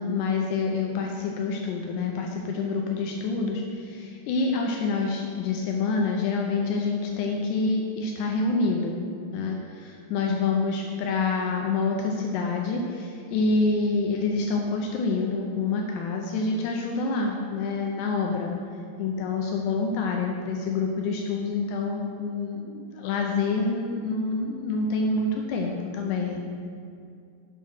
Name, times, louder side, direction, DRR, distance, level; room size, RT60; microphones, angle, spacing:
voice 1, 0.0-9.0 9.3-18.5 19.0-26.4, left 3 dB, 90° left, 1 dB, 2.3 m, -27 dB
8.1 x 5.7 x 6.3 m, 2.4 s
omnidirectional pair, 5.7 m